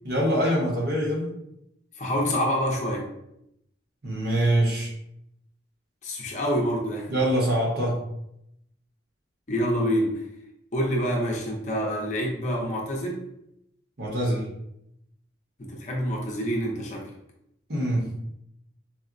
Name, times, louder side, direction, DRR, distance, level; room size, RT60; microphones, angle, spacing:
voice 1, 0.0-1.3 4.0-4.9 7.1-8.0 14.0-14.4 17.7-18.0, right 1 dB, 55° right, -3 dB, 0.9 m, -24 dB
voice 2, 2.0-3.1 6.0-7.2 9.5-10.2 10.7-13.2 15.6-17.1, equal, 40° left, -2 dB, 0.6 m, -27 dB
4.1 x 2.1 x 2.5 m, 0.79 s
head